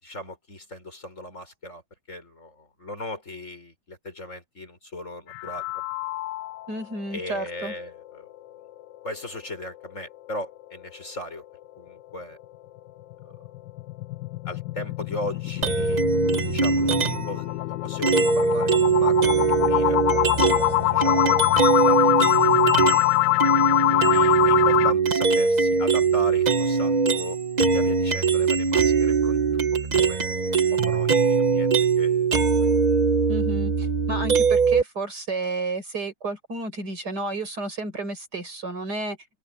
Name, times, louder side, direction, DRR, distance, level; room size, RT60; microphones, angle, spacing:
voice 1, 0.0-1.8 2.1-5.8 7.1-8.3 9.0-11.4 11.8-12.4 13.2-13.4 14.4-16.0 16.4-19.3 19.6-21.4 21.8-22.5 22.9-23.1 23.9-27.4 27.6-29.6 30.1-30.2 30.7-32.7, left 1 dB, 40° left, 6.1 m, -37 dB
sound 1, 5.3-6.8 7.2-7.3 7.7-7.8 8.2-8.3 13.1-24.9, left 17 dB, 80° left, 1.3 m, -24 dB
voice 2, 6.7-7.7 33.3-39.2, right 2 dB, 60° right, 6.4 m, -31 dB
sound 2, 15.6-17.4 18.0-23.1 23.4-34.8, right 5 dB, 35° right, 0.7 m, -21 dB
omnidirectional pair, 2.0 m